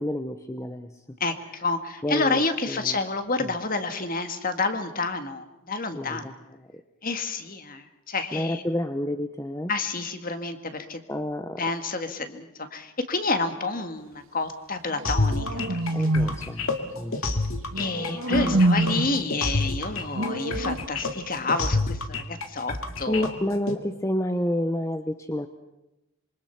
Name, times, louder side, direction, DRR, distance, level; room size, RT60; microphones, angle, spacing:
voice 1, 0.0-1.0 2.0-3.0 3.4-3.6 5.9-6.8 8.3-9.7 11.1-11.6 15.9-17.2 18.1-18.6 23.1-25.5, left 1 dB, 15° left, 8 dB, 0.8 m, -30 dB
voice 2, 1.2-6.3 7.0-8.6 9.7-11.0 11.6-15.6 16.0-16.1 17.2-17.4 17.8-23.3, left 3 dB, 40° left, 8 dB, 1.8 m, -29 dB
sound 1, 14.9-16.5 17.7-19.2 20.1-20.8, right 1 dB, 70° right, 2.0 m, -25 dB
sound 2, 15.0-23.7, left 3 dB, 65° left, 2.3 m, -28 dB
26.5 x 24.0 x 5.8 m, 0.94 s
head